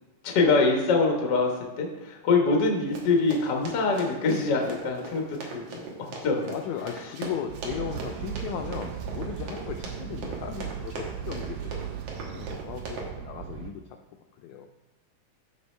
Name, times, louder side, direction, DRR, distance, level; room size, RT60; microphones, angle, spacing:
voice 1, 0.2-5.8 6.2-6.5, left 3 dB, 65° left, 1 dB, 1.0 m, -24 dB
Run, 2.9-13.1, right 2 dB, 60° right, 2.0 m, -40 dB
voice 2, 6.4-11.9 12.3-13.8 14.4-14.7, left 8 dB, 85° left, 4 dB, 1.6 m, -36 dB
sound 1, 7.5-13.7, right 8 dB, 85° right, 2.2 m, -37 dB
13.0 x 5.1 x 3.3 m, 1.1 s
omnidirectional pair, 3.9 m